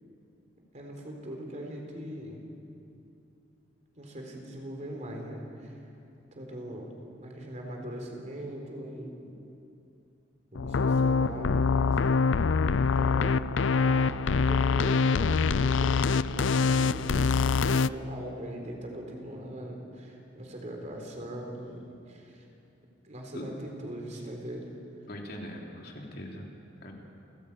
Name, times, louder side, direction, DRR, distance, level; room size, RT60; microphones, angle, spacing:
voice 1, 0.7-2.4 4.0-5.8 6.3-6.9 7.2-9.2 10.5-12.0 12.7-22.4 23.0-24.7, right 1 dB, 40° right, 1 dB, 4.0 m, -40 dB
sound 1, 10.6-17.9, left 4 dB, 75° left, 0.5 m, -24 dB
voice 2, 25.1-26.5 26.8-26.9, equal, 55° left, -1 dB, 3.5 m, -41 dB
29.0 x 15.5 x 8.7 m, 2.7 s
head